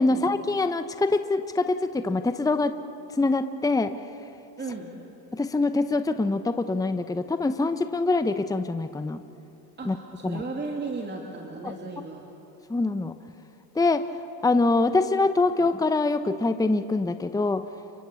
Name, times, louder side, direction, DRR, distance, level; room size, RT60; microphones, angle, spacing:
voice 1, 0.0-2.7 3.2-3.9 5.3-9.2 9.9-10.0 10.2-10.4 11.6-11.7 12.7-13.1 13.7-14.1 14.4-17.6, left 3 dB, 5° left, 10 dB, 0.9 m, -24 dB
voice 2, 4.6-5.0 9.8-12.2, right 3 dB, 20° right, 0 dB, 2.9 m, -35 dB
29.5 x 24.0 x 7.0 m, 2.8 s
hypercardioid pair, 80°, 49 cm